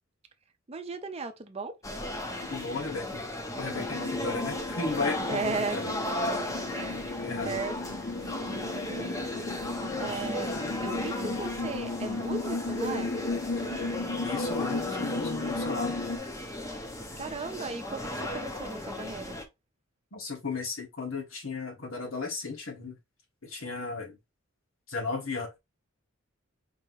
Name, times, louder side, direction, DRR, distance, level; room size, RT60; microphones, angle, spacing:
voice 1, 0.7-1.7 5.3-8.0 8.2-9.6 10.0-10.5 10.8-13.1 17.2-19.4, right 4 dB, 30° right, 0.6 m, -37 dB
sound 1, 1.8-19.4, left 1 dB, 15° left, 0.7 m, -35 dB
voice 2, 2.5-3.2 3.6-5.8 7.2-7.6 14.2-15.9 20.1-23.0 23.4-24.2 24.9-25.6, left 4 dB, 80° left, 1.7 m, -35 dB
sound 2, 3.8-16.2, left 3 dB, 50° left, 0.9 m, -35 dB
4.6 x 2.9 x 2.9 m
head